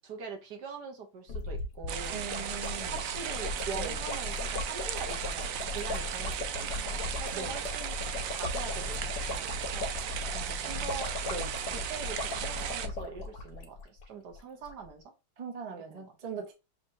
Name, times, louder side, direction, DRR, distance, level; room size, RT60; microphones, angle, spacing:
voice 1, 0.0-2.2 2.9-8.0 8.3-10.3 10.6-11.1 11.7-15.1 15.9-16.1, right 5 dB, 65° right, 1.6 m, -43 dB
sound 1, 1.3-14.0 14.3-14.4 14.6-14.9, left 3 dB, 60° left, 1.4 m, -37 dB
sound 2, 1.9-12.9, right 9 dB, 85° right, 0.7 m, -36 dB
voice 2, 2.1-3.0 3.8-4.0 7.3-7.5 10.3-11.0 11.3-11.6 15.4-16.5, right 5 dB, 30° right, 0.7 m, -40 dB
6.3 x 2.9 x 2.8 m
omnidirectional pair, 2.0 m